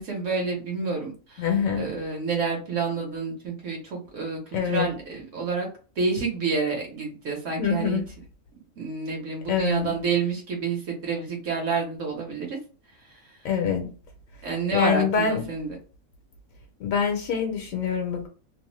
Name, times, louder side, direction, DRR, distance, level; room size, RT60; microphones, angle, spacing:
voice 1, 0.0-1.5 1.8-5.7 6.0-8.0 8.8-12.6 14.4-15.7, right 4 dB, 65° right, 1.2 m, -28 dB
voice 2, 1.4-1.9 4.5-4.9 7.6-8.1 9.5-10.0 13.4-13.9 14.7-15.5 16.8-18.3, left 6 dB, 70° left, 1.0 m, -25 dB
2.8 x 2.1 x 3.0 m
omnidirectional pair, 1.5 m